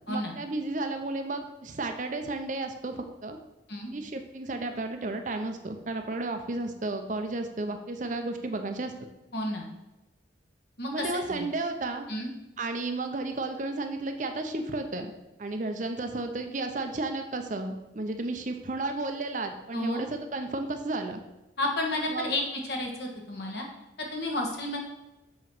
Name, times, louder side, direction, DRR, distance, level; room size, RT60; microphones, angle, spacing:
voice 1, 0.1-3.4 3.9-8.9 10.9-12.1 12.6-15.1 15.4-21.2 22.1-22.3, right 2 dB, 40° right, 6 dB, 0.6 m, -33 dB
voice 2, 9.3-9.7 10.8-11.5 12.1-12.3 19.7-20.1 21.6-22.4 22.7-23.7 24.0-24.8, left 1 dB, 60° left, 1 dB, 1.3 m, -31 dB
7.3 x 3.0 x 6.0 m, 0.97 s
head